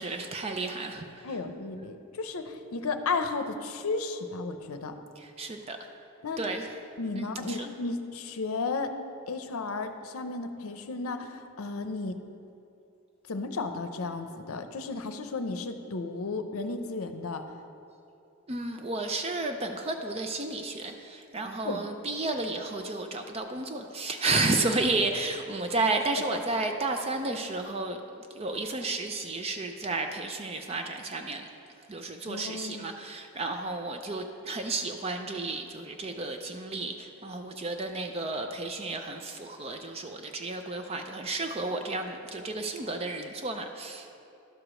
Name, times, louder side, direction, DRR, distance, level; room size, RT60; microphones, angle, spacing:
voice 1, 0.0-1.3 5.2-5.8 6.4-6.7 7.1-7.7 18.5-31.5 31.9-44.1, right 3 dB, 25° right, 5 dB, 0.4 m, -32 dB
voice 2, 1.2-5.0 6.2-6.4 7.0-8.9 9.3-12.2 13.3-17.4 21.6-21.8 32.3-32.9, left 3 dB, 75° left, 8 dB, 0.6 m, -34 dB
11.5 x 4.9 x 6.2 m, 2.8 s
head